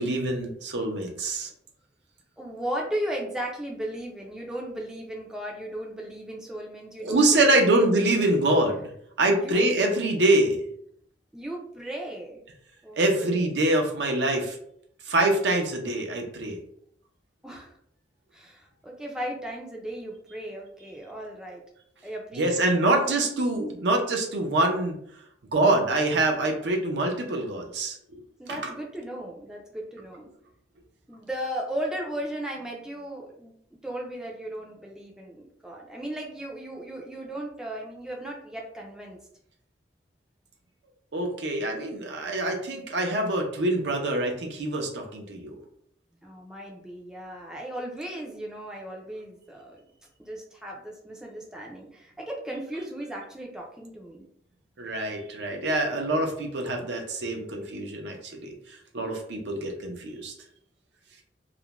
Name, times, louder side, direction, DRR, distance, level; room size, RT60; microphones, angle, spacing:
voice 1, 0.0-1.5 7.0-8.9 9.2-10.6 13.0-14.6 15.1-16.6 22.3-25.0 25.5-28.2 28.5-28.7 41.1-45.6 54.8-58.5 58.9-60.3, right 2 dB, 70° right, 2 dB, 0.5 m, -25 dB
voice 2, 2.4-7.8 8.1-8.2 9.3-9.7 11.3-12.4 12.8-13.6 17.4-17.7 18.3-21.6 22.0-23.0 28.4-30.3 31.1-33.5 33.8-39.2 46.2-49.8 50.2-54.2, right 1 dB, 5° right, -2 dB, 0.4 m, -36 dB
2.4 x 2.1 x 2.9 m, 0.69 s
head